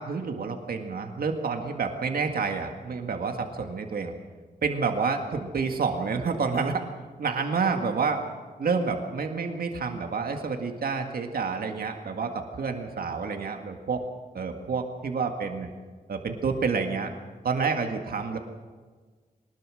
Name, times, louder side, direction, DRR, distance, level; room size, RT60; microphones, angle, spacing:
voice 1, 0.0-4.1 4.6-6.8 7.2-8.2 8.6-14.0 14.3-15.7 16.1-17.1 17.4-18.4, right 5 dB, 70° right, 4 dB, 1.9 m, -29 dB
22.5 x 20.0 x 6.4 m, 1.5 s
wide cardioid pair, 165°, 16 cm